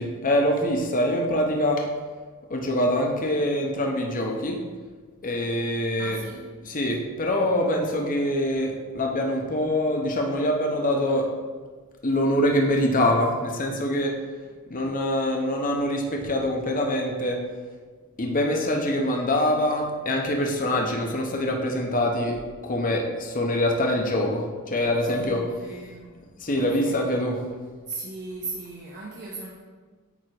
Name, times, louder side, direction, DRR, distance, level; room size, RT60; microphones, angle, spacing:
voice 1, 0.0-1.9 2.5-4.6 5.2-6.2 6.6-11.3 12.0-14.1 14.7-17.4 18.2-22.4 22.6-25.4 26.4-27.4, left 1 dB, 40° left, 1 dB, 0.9 m, -24 dB
voice 2, 6.0-6.4 25.0-26.1 26.5-27.1 27.9-29.5, right 3 dB, 50° right, -5 dB, 1.0 m, -38 dB
8.7 x 3.6 x 4.9 m, 1.4 s
head